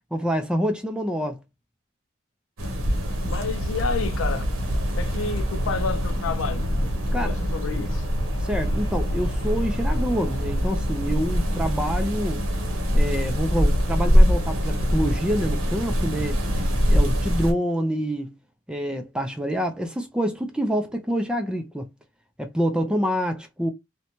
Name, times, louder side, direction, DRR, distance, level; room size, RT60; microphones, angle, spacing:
voice 1, 0.1-1.4 7.1-7.4 8.4-12.4 12.9-16.4 16.9-18.3 18.7-21.9 22.4-23.7, equal, 5° right, 0.3 m, -27 dB
sound 1, 2.6-17.5, equal, 80° right, 0.8 m, -23 dB
Singing, 2.9-14.1, left 1 dB, 20° left, 0.7 m, -49 dB
voice 2, 3.2-4.5 5.0-6.9 7.1-8.1, left 4 dB, 80° left, 0.4 m, -30 dB
2.6 x 2.1 x 2.8 m
head